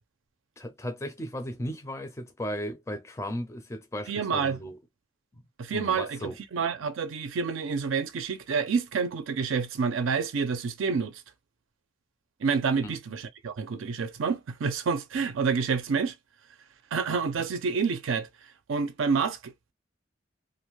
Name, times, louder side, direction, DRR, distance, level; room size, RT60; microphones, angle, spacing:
voice 1, 0.6-4.8 5.3-5.4 5.7-6.4 12.8-13.0, equal, 15° left, 0.4 m, -36 dB
voice 2, 4.1-4.6 5.6-11.2 12.4-16.1 16.9-19.7, right 5 dB, 85° right, 0.4 m, -28 dB
2.5 x 2.2 x 3.0 m
head